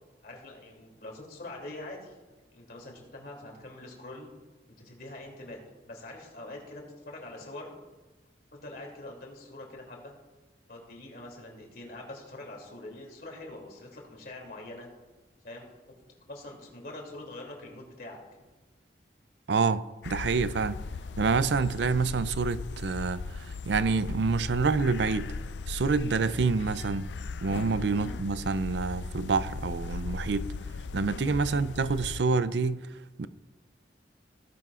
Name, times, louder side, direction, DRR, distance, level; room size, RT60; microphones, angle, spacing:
voice 1, 0.2-2.2 2.5-4.3 4.8-7.7 8.5-10.1 10.7-14.9 15.4-15.7 16.3-18.4 27.9-28.1 31.4-31.6, left 2 dB, 55° left, 2.9 m, -44 dB
voice 2, 19.5-20.8 21.2-25.4 25.7-27.1 27.4-30.5 30.9-33.3, right 4 dB, 80° right, 0.5 m, -27 dB
sound 1, 20.0-32.2, left 4 dB, 85° left, 0.4 m, -38 dB
18.0 x 10.5 x 2.5 m
head